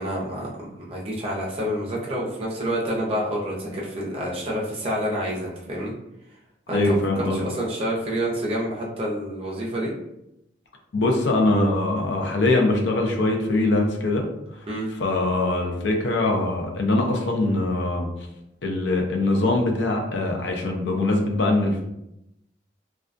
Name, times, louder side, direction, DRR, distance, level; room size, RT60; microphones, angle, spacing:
voice 1, 0.0-5.9 6.7-7.0 7.3-9.9 14.7-14.9, equal, 30° right, -3 dB, 0.6 m, -28 dB
voice 2, 6.7-7.4 10.9-14.3 14.5-14.6 14.9-18.1 18.6-21.8, left 2 dB, 70° left, 2 dB, 0.5 m, -22 dB
2.3 x 2.2 x 2.5 m, 0.84 s
head